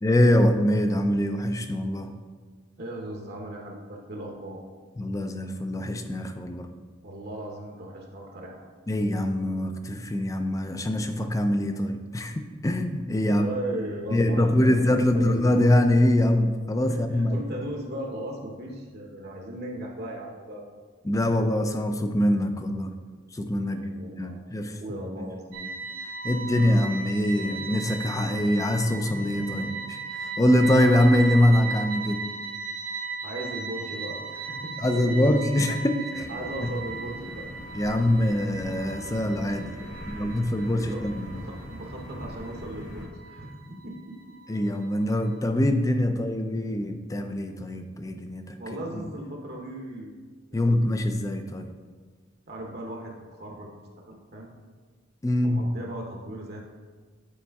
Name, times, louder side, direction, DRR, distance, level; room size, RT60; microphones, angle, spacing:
voice 1, 0.0-2.1 5.0-6.7 8.9-13.5 14.1-17.4 21.0-22.9 23.3-23.9 24.2-25.0 25.6-25.7 26.2-32.2 34.8-36.3 37.8-39.8 40.1-41.5 44.5-48.6 50.5-51.7 55.2-55.6, left 1 dB, 15° left, 7 dB, 0.4 m, -24 dB
voice 2, 2.8-4.6 7.0-8.6 13.3-15.6 16.9-17.0 17.3-20.6 23.7-24.4 24.7-25.5 33.2-35.2 36.3-37.5 39.8-40.4 40.7-41.0 41.3-44.4 48.6-50.1 50.5-50.6 52.5-54.5 55.4-56.6, right 1 dB, 55° right, 0 dB, 0.8 m, -37 dB
sound 1, 25.5-45.4, right 4 dB, 90° right, 0.7 m, -37 dB
sound 2, 36.1-43.1, equal, 60° left, 1.9 m, -41 dB
8.6 x 4.2 x 3.5 m, 1.4 s
head